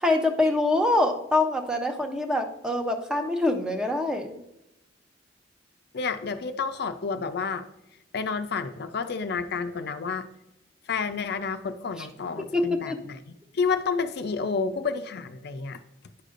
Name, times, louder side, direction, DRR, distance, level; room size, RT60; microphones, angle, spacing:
voice 1, 0.0-4.4 12.0-12.1 12.5-13.0, left 2 dB, 5° right, 5 dB, 0.6 m, -25 dB
voice 2, 5.9-7.6 8.1-10.3 10.9-13.2 13.5-15.8, left 5 dB, 60° left, 9 dB, 0.5 m, -30 dB
10.0 x 6.5 x 2.5 m, 0.88 s
head